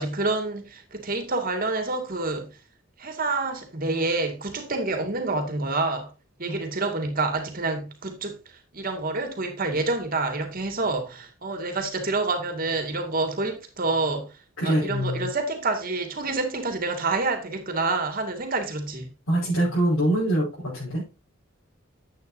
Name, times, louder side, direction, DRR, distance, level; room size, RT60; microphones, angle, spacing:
voice 1, 0.0-2.5 3.0-6.1 6.4-8.4 8.7-14.3 14.6-19.1, right 3 dB, 45° right, 2.3 m, -28 dB
voice 2, 14.6-15.3 19.3-21.0, right 1 dB, 85° left, 5.5 m, -24 dB
10.5 x 8.6 x 2.8 m
head